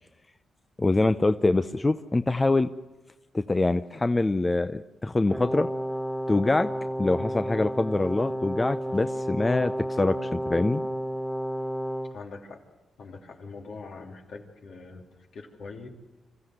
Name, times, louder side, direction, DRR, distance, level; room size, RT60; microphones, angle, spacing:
voice 1, 0.8-2.7 3.3-5.7 6.3-6.7 7.0-10.8, left 2 dB, 25° left, 11 dB, 0.6 m, -24 dB
Brass instrument, 5.3-12.2, equal, 5° left, 1.3 m, -32 dB
voice 2, 12.1-12.6 13.0-15.9, left 4 dB, 75° left, 1 dB, 3.0 m, -43 dB
26.5 x 14.5 x 7.9 m, 1.1 s
cardioid pair, 70°, 0 cm